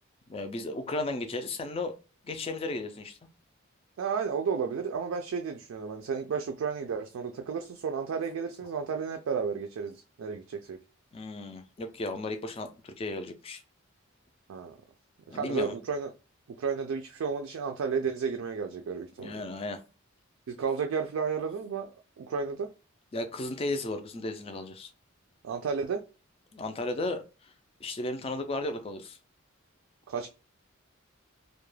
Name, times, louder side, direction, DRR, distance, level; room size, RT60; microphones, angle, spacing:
voice 1, 0.3-1.9 2.2-3.2 11.1-13.6 15.3-15.8 19.2-19.8 23.1-24.9 26.5-27.2 27.8-29.2, left 2 dB, 25° left, 0.3 m, -34 dB
voice 2, 4.0-10.8 14.5-14.8 15.3-16.1 16.6-19.4 20.5-21.9 22.2-22.7 25.4-26.0 30.1-30.3, right 5 dB, 75° right, 0.3 m, -32 dB
2.2 x 2.1 x 3.1 m
head